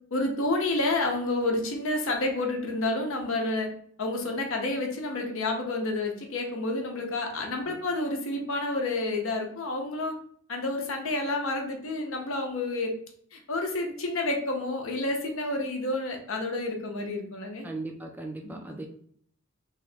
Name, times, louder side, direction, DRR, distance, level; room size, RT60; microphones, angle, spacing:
voice 1, 0.1-3.7 4.0-10.1 10.5-12.9 13.3-17.7 18.4-18.8, left 2 dB, 70° left, 3 dB, 0.7 m, -29 dB
voice 2, 17.6-18.9, right 2 dB, 10° right, 3 dB, 0.3 m, -38 dB
3.1 x 2.8 x 3.3 m, 0.62 s
head